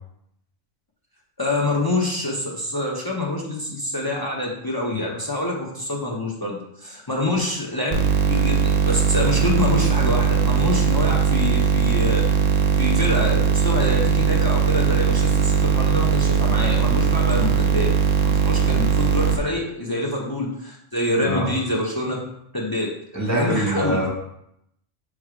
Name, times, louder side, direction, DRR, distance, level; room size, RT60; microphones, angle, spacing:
voice 1, 1.4-8.0 8.3-12.2 12.8-17.9 18.2-22.2 22.5-22.9 23.3-24.0, left 2 dB, 30° left, -3 dB, 0.4 m, -26 dB
sound 1, 7.9-19.4, right 6 dB, 55° right, 0.5 m, -19 dB
voice 2, 23.1-24.1, right 1 dB, 15° right, -4 dB, 1.0 m, -23 dB
3.4 x 3.2 x 4.7 m, 0.76 s
omnidirectional pair, 1.2 m